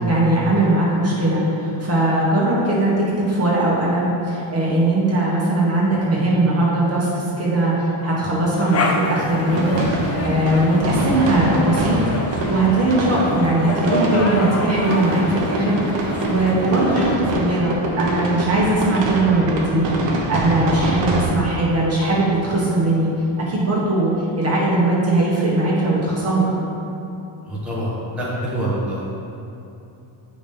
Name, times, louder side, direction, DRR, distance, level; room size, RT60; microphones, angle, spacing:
voice 1, 0.0-12.0 12.3-23.1 23.4-26.5, right 2 dB, 30° right, -6 dB, 1.4 m, -20 dB
sound 1, 8.6-17.2, left 2 dB, 30° left, 0.5 m, -27 dB
sound 2, 9.5-21.3, right 2 dB, 60° right, 1.1 m, -25 dB
voice 2, 27.5-29.1, right 1 dB, ahead, -9 dB, 1.2 m, -25 dB
7.3 x 5.1 x 3.6 m, 2.8 s
cardioid pair, 145°, 49 cm